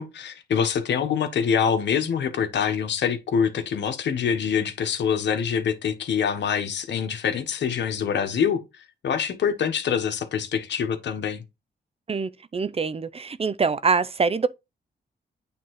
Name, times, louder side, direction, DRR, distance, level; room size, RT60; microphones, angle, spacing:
voice 1, 0.0-11.4, left 7 dB, 80° left, 1.3 m, -25 dB
voice 2, 12.1-14.5, right 5 dB, 35° right, 0.6 m, -24 dB
8.7 x 3.6 x 4.7 m
cardioid pair, 85°, 18 cm